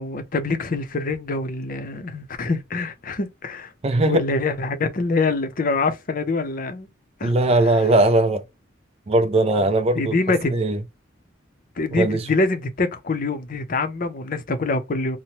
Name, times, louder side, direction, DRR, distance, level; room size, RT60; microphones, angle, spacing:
voice 1, 0.0-3.7 4.0-6.9 7.2-7.3 9.9-10.5 11.8-15.2, left 3 dB, 45° left, 0.6 m, -25 dB
voice 2, 3.8-4.2 7.2-8.4 9.1-10.2 10.5-10.8 11.9-12.2, right 2 dB, 30° right, 0.4 m, -19 dB
2.8 x 2.1 x 3.0 m
head